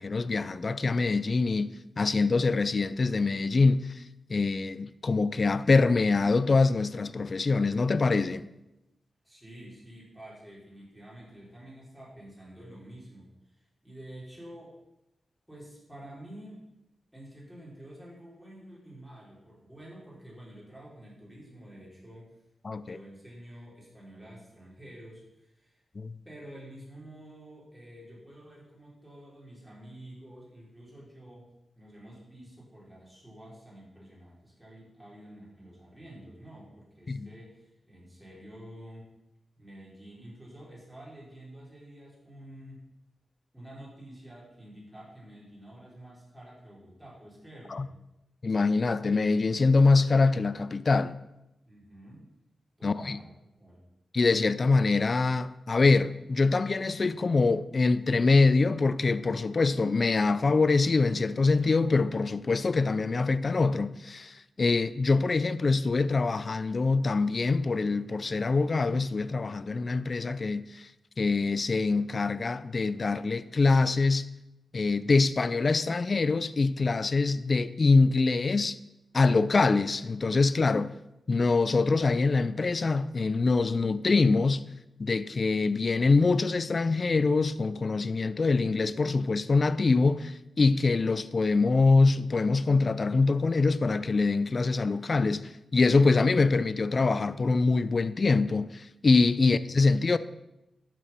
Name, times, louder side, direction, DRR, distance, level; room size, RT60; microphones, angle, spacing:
voice 1, 0.0-4.0 4.3-8.5 22.6-23.0 26.0-26.1 37.1-37.3 47.7-47.9 48.4-51.2 52.8-53.2 54.1-70.9 71.2-74.3 74.7-78.8 79.1-80.9 81.3-84.6 85.0-100.2, left 3 dB, 40° left, 0.5 m, -24 dB
voice 2, 9.2-14.7 15.5-16.6 17.1-22.3 22.8-25.8 26.2-31.5 31.7-39.1 39.6-42.9 43.5-47.9 51.6-52.3 52.8-53.8 99.4-99.6, right 1 dB, 10° right, 5.1 m, -49 dB
12.0 x 7.5 x 6.0 m
wide cardioid pair, 110°, 0 cm